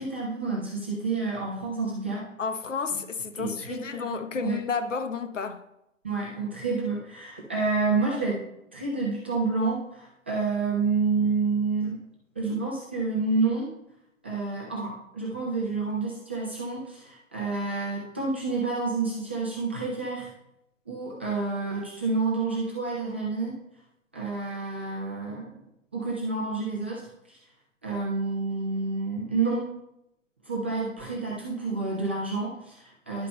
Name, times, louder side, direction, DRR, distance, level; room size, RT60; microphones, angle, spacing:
voice 1, 0.0-2.3 3.4-4.6 6.0-12.0 12.4-13.7 14.2-20.3 20.9-23.6 24.1-25.5 25.9-27.4 27.8-29.7 30.5-33.3, right 4 dB, 10° right, 0.3 m, -29 dB
voice 2, 2.4-5.6, left 5 dB, 75° left, 0.9 m, -31 dB
11.0 x 8.1 x 2.2 m
figure-of-eight pair, 120°, 38 cm